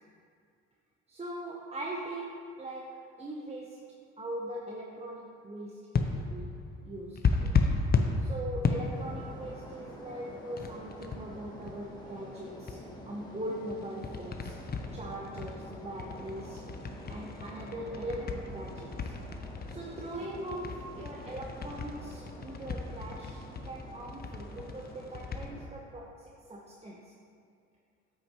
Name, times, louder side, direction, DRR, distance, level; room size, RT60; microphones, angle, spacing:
voice 1, 1.1-3.8 4.2-6.6 6.8-7.5 8.2-12.8 13.0-14.6 14.9-16.6 17.1-19.1 19.7-27.1, right 1 dB, 20° right, -2 dB, 0.9 m, -41 dB
sound 1, 5.9-10.0 10.6-11.7 12.7-12.8 13.7-25.5, left 4 dB, 30° left, 0.7 m, -33 dB
sound 2, 8.9-25.7, equal, 15° left, 1.3 m, -48 dB
8.4 x 6.4 x 3.0 m, 2.3 s
hypercardioid pair, 65°, 32 cm